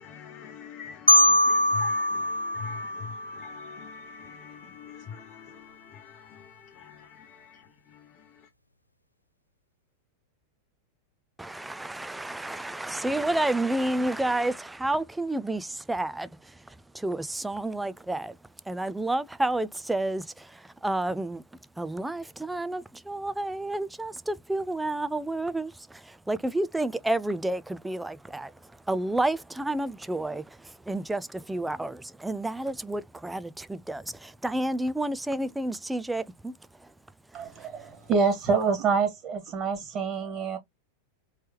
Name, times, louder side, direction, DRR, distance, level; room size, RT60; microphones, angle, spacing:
voice 1, 0.0-8.5, left 7 dB, 35° left, 0.6 m, -45 dB
Marimba xylophone, 1.1-3.9, left 1 dB, 85° left, 0.3 m, -23 dB
voice 2, 11.4-18.4 18.7-21.4 21.8-28.5 28.9-36.5 37.6-37.7, right 1 dB, 5° right, 0.4 m, -30 dB
voice 3, 37.3-40.6, right 5 dB, 30° right, 2.1 m, -26 dB
4.4 x 3.1 x 3.0 m
figure-of-eight pair, 90°, 0 cm